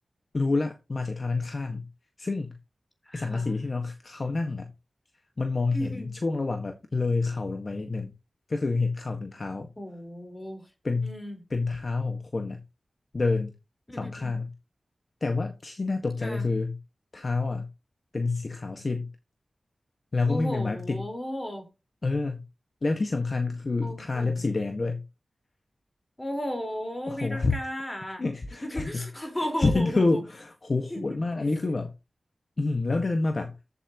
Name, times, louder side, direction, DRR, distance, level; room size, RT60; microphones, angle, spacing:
voice 1, 0.3-1.9 2.2-2.5 3.1-4.7 5.4-8.1 8.5-9.7 10.8-11.1 11.5-12.6 13.1-13.5 14.0-14.5 15.2-16.8 17.1-17.7 18.1-19.1 20.1-21.1 22.0-22.4 22.8-25.0 27.1-27.5 28.2-29.1 29.4-31.9 32.6-33.5, left 3 dB, 45° left, 1.6 m, -28 dB
voice 2, 3.1-3.6 5.7-6.1 9.8-10.7 11.0-11.4 13.9-14.3 16.2-16.4 20.3-21.6 23.8-24.5 26.2-28.2 28.6-30.2 30.9-31.0 31.4-31.7, equal, 20° left, 4.4 m, -35 dB
14.5 x 8.5 x 3.0 m
wide cardioid pair, 110°, 0 cm